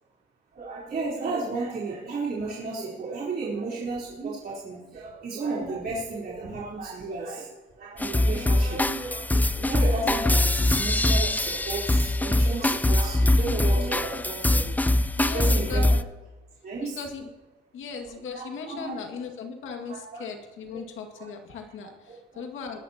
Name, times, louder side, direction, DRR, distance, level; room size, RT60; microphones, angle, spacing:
voice 1, 0.5-7.5 7.8-14.8 15.3-15.8 16.6-17.0 18.3-18.9 19.9-20.2 20.7-20.8 21.1-21.3 22.3-22.4, right 3 dB, 50° right, -7 dB, 4.0 m, -33 dB
sound 1, 8.0-16.0, left 1 dB, 10° left, 0.5 m, -23 dB
voice 2, 15.2-16.0 16.8-17.3 17.7-22.8, left 5 dB, 80° left, 3 dB, 2.2 m, -37 dB
22.0 x 11.0 x 2.9 m, 1.2 s
cardioid pair, 90°, 20 cm